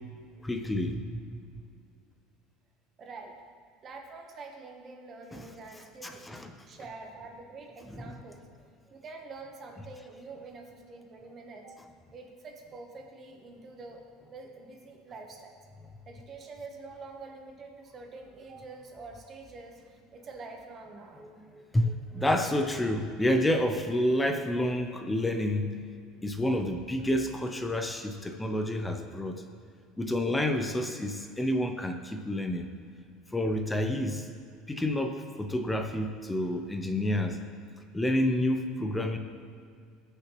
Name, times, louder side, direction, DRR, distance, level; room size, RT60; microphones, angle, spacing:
voice 1, 0.4-1.2 5.3-5.5 6.0-6.5 7.9-8.0 21.2-25.8 26.2-29.4 30.0-32.7 33.3-34.3 34.7-37.4 37.9-39.2, left 1 dB, 5° left, 6 dB, 0.5 m, -29 dB
voice 2, 3.0-3.4 3.8-6.3 6.7-8.5 8.9-11.8 12.1-14.0 14.3-15.6 16.1-21.3, right 3 dB, 25° right, 3 dB, 1.0 m, -46 dB
19.0 x 6.6 x 3.0 m, 2.3 s
cardioid pair, 160°, 0 cm